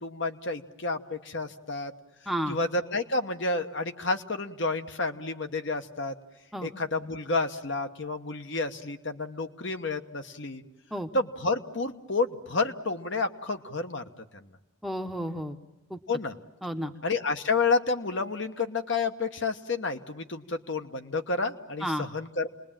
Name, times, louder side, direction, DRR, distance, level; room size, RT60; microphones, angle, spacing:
voice 1, 0.0-1.9 2.5-6.1 6.6-10.6 11.1-14.0 14.3-14.5 16.1-16.3 17.0-22.5, left 3 dB, 55° left, 7 dB, 1.2 m, -30 dB
voice 2, 2.3-2.6 6.5-6.7 10.9-11.1 14.8-15.6 15.9-16.0 16.6-16.9 21.8-22.1, equal, ahead, 5 dB, 0.9 m, -31 dB
29.0 x 20.5 x 9.0 m, 1.0 s
head